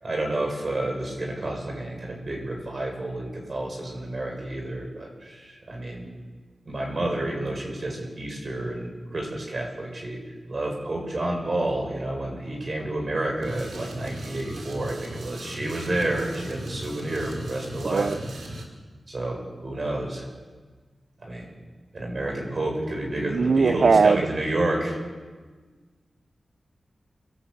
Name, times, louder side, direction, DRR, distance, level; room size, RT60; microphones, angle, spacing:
voice 1, 0.0-6.1 6.7-10.2 10.5-18.1 19.1-20.3 21.2-21.5 21.9-25.0, right 1 dB, 40° right, 1 dB, 7.5 m, -30 dB
sound 1, 13.4-18.7, right 1 dB, 80° right, 5.3 m, -37 dB
voice 2, 23.2-24.2, right 4 dB, 60° right, 15 dB, 0.7 m, -20 dB
27.5 x 19.0 x 8.6 m, 1.4 s
wide cardioid pair, 135°, 0 cm